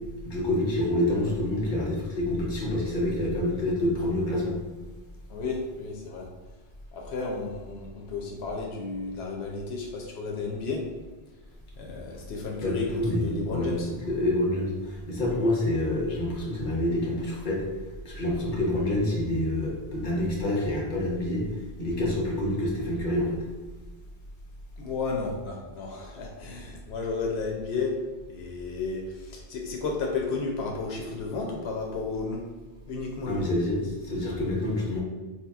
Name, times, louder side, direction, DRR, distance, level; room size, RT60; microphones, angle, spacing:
voice 1, 0.2-4.6 12.6-17.6 18.0-23.4 33.3-35.0, left 1 dB, 50° left, -3 dB, 1.0 m, -27 dB
voice 2, 5.3-6.3 6.9-10.8 11.8-13.9 24.8-27.9 28.3-32.4 32.9-33.5, left 4 dB, 90° left, 0 dB, 0.8 m, -33 dB
4.3 x 2.8 x 2.3 m, 1.2 s
omnidirectional pair, 1.1 m